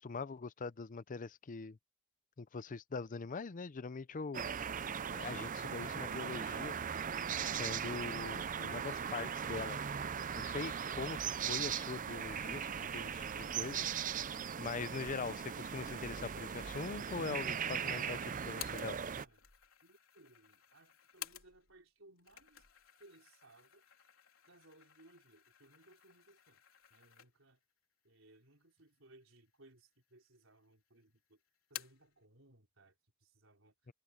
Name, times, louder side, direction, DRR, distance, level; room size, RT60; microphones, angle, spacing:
voice 1, 0.0-1.8 2.4-4.5 5.1-6.7 7.5-9.8 10.3-13.9 14.6-19.0 33.9-34.0, left 4 dB, 40° left, 0.5 m, -42 dB
sound 1, 4.3-19.3, right 7 dB, 40° right, 0.5 m, -39 dB
sound 2, 15.8-21.8 22.2-27.6 28.0-28.1 29.0-29.6 30.0-30.7 31.0-32.1, left 12 dB, 85° left, 4.0 m, -54 dB
voice 2, 19.0-19.5 19.8-22.7 23.0-23.8 24.5-26.6 26.9-27.6 28.0-31.4 31.7-33.9, right 2 dB, 75° right, 4.8 m, -64 dB
head